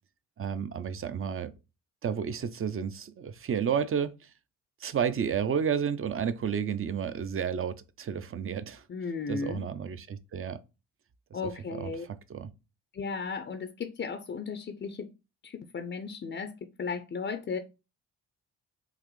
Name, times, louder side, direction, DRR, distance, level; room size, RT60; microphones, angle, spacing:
voice 1, 0.4-1.5 2.0-4.1 4.8-8.8 9.3-10.6 11.8-12.5, right 7 dB, 35° right, 0.5 m, -31 dB
voice 2, 8.9-9.6 11.3-12.0 12.9-15.1 15.4-17.6, left 5 dB, 30° left, 0.5 m, -35 dB
3.9 x 2.5 x 3.1 m
hypercardioid pair, 50°, 39 cm